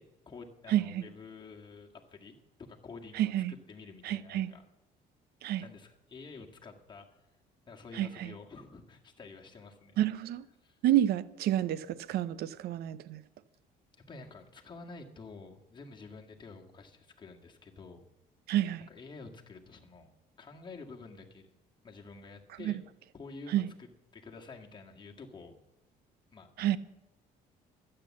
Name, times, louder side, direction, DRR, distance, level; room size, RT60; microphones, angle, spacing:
voice 1, 0.0-2.4 2.7-3.3 3.7-4.6 5.6-7.1 7.7-10.0 10.6-10.8 14.0-18.0 18.9-20.1 20.4-21.5 21.8-22.8 23.1-23.6 24.1-25.6 26.3-26.8, left 4 dB, 25° left, 1.9 m, -49 dB
voice 2, 0.7-1.1 3.1-3.5 4.0-4.5 5.4-5.6 7.9-8.3 10.0-10.5 10.8-13.2 18.5-18.9 22.6-22.7 23.5-23.7 26.6-26.8, right 12 dB, 70° right, 0.6 m, -29 dB
12.0 x 8.8 x 7.3 m
cardioid pair, 110°, 17 cm